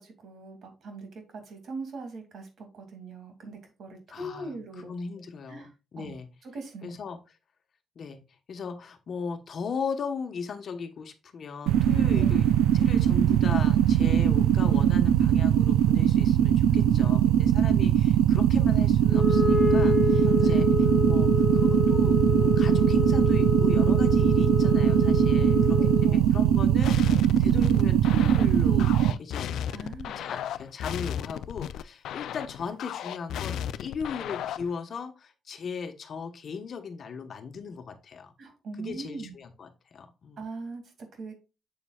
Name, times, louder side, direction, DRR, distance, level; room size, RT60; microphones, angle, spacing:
voice 1, 0.0-4.9 5.5-5.7 6.0-6.2 6.4-7.0 12.1-12.4 16.7-17.4 20.2-20.8 25.4-26.3 29.7-30.3 38.4-39.4 40.4-41.3, right 3 dB, 60° right, 4 dB, 2.4 m, -40 dB
voice 2, 4.1-4.6 4.9-6.3 6.8-7.2 7.9-8.2 8.5-20.7 21.0-25.8 26.0-29.6 30.1-38.3 38.8-40.4, left 5 dB, 55° left, 7 dB, 1.2 m, -37 dB
sound 1, 11.7-29.1, right 10 dB, 90° right, 0.4 m, -21 dB
Wind instrument woodwind instrument, 19.1-26.2, left 6 dB, 15° left, 0.8 m, -27 dB
sound 2, 26.8-34.8, left 10 dB, 80° left, 0.4 m, -35 dB
7.6 x 7.0 x 2.4 m, 0.29 s
cardioid pair, 90°, 0 cm